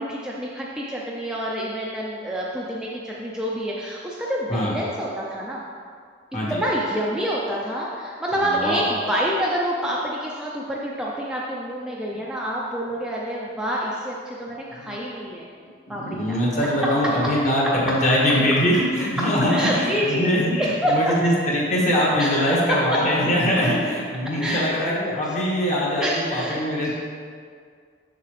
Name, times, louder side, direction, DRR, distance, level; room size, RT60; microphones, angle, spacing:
voice 1, 0.0-5.6 6.5-15.5 15.9-16.4 18.3-18.4 18.7-18.8 19.2-21.1 22.2-22.8 24.4-25.3 26.0-26.6 26.8-26.9, equal, 5° right, -5 dB, 0.5 m, -27 dB
voice 2, 8.4-8.8 14.8-15.0 16.0-26.9, equal, 40° left, -5 dB, 1.5 m, -22 dB
6.9 x 6.7 x 3.3 m, 2.1 s
head